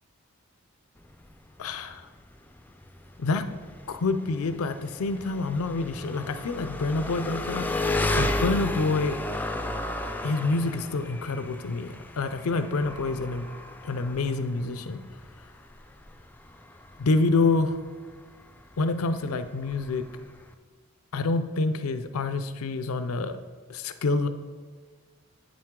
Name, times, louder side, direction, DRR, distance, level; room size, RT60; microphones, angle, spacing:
Engine, 1.0-20.5, left 1 dB, 10° left, 0.3 m, -34 dB
voice 1, 1.6-2.1 3.2-3.5 3.9-7.9 8.2-9.2 10.2-13.5 13.8-15.0 17.0-17.8 18.8-20.0 21.1-23.4 23.7-24.3, left 3 dB, 75° left, 10 dB, 0.5 m, -27 dB
8.5 x 7.5 x 3.7 m, 1.5 s
head